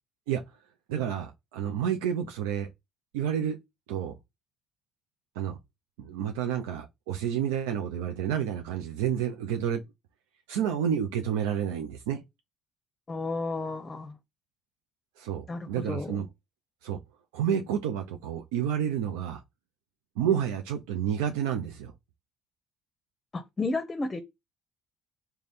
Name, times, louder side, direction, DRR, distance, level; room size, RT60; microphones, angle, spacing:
voice 1, 0.9-2.7 3.1-3.6 3.9-4.1 5.4-5.6 6.0-9.8 10.5-12.2 15.2-16.3 16.8-17.0 17.3-19.4 20.2-21.9, right 9 dB, 90° right, 0.4 m, -29 dB
voice 2, 13.1-14.2 15.5-16.2 23.3-24.2, left 3 dB, 30° left, 0.6 m, -32 dB
3.4 x 2.2 x 4.0 m
supercardioid pair, 70°, 0 cm